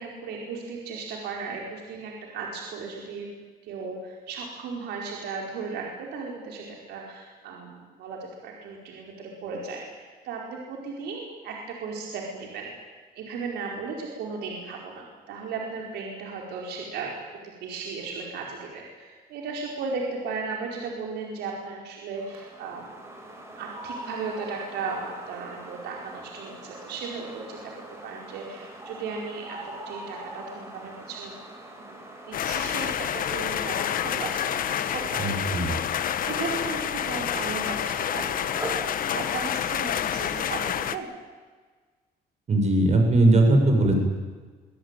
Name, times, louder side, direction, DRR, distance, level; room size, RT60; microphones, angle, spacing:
voice 1, 0.0-3.3 3.7-17.1 17.6-22.9 23.6-27.7 28.0-31.3 31.8-32.0 32.2-35.4 35.8-38.9 39.1-41.1, right 4 dB, 80° right, 0 dB, 4.7 m, -36 dB
sound 1, 22.1-39.1, right 1 dB, 15° right, 7.2 m, -43 dB
sound 2, 32.3-41.0, left 10 dB, 55° left, 1.3 m, -28 dB
voice 2, 35.2-35.7 42.5-44.0, right 2 dB, 40° right, 3 dB, 6.8 m, -19 dB
24.5 x 17.5 x 9.1 m, 1.4 s
cardioid pair, 110°, 17 cm